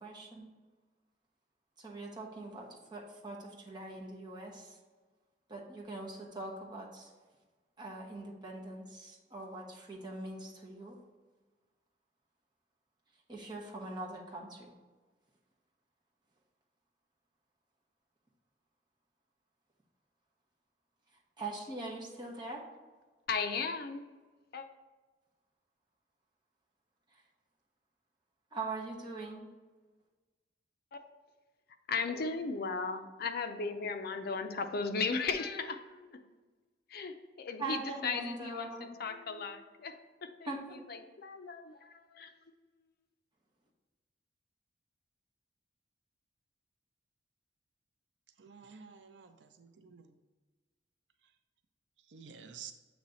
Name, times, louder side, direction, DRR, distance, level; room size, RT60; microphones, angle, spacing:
voice 1, 0.0-0.5 1.8-4.8 5.5-7.1 7.8-11.0 13.3-14.7 21.4-22.6 28.5-29.5 37.6-38.9 40.5-40.8, right 2 dB, 25° right, -2 dB, 1.2 m, -42 dB
voice 2, 23.3-24.1 24.5-24.7 30.9-31.0 31.9-36.2 36.9-39.9 40.7-42.3, left 4 dB, 60° left, 7 dB, 0.5 m, -36 dB
voice 3, 48.4-50.2 52.1-52.7, right 7 dB, 75° right, 7 dB, 0.5 m, -51 dB
7.8 x 3.1 x 4.1 m, 1.3 s
head